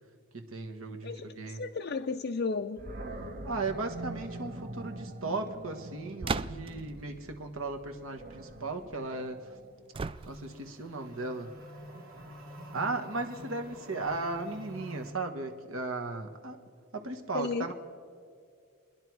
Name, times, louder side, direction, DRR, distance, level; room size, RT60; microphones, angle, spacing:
voice 1, 0.3-1.6 3.4-9.4 10.3-11.5 12.7-16.6 16.9-17.7, right 3 dB, 70° right, 5 dB, 1.3 m, -36 dB
voice 2, 1.0-2.8 17.3-17.7, left 4 dB, 50° left, 5 dB, 0.4 m, -33 dB
Animal, 2.8-9.9, right 2 dB, 45° right, 1.1 m, -44 dB
sound 1, 6.2-6.9 9.9-10.7, right 4 dB, 25° right, 0.3 m, -35 dB
sound 2, 10.1-15.1, equal, 85° right, 2.3 m, -47 dB
28.5 x 10.5 x 4.7 m, 2.2 s
head